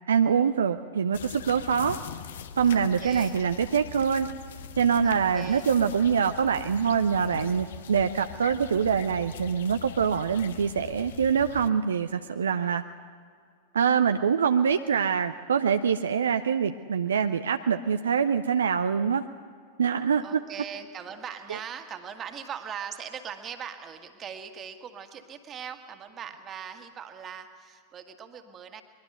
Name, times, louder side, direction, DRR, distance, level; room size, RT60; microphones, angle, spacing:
voice 1, 0.1-2.0 2.6-4.3 4.8-12.8 13.7-19.2 19.8-20.4 21.5-21.6, right 7 dB, 70° right, 9 dB, 0.6 m, -24 dB
sound 1, 1.1-11.7, left 9 dB, 60° left, 1.0 m, -42 dB
voice 2, 2.7-3.4 5.0-5.6 20.2-28.8, right 7 dB, 25° right, 6 dB, 1.9 m, -40 dB
23.0 x 21.5 x 8.0 m, 2.1 s
figure-of-eight pair, 90°, 0 cm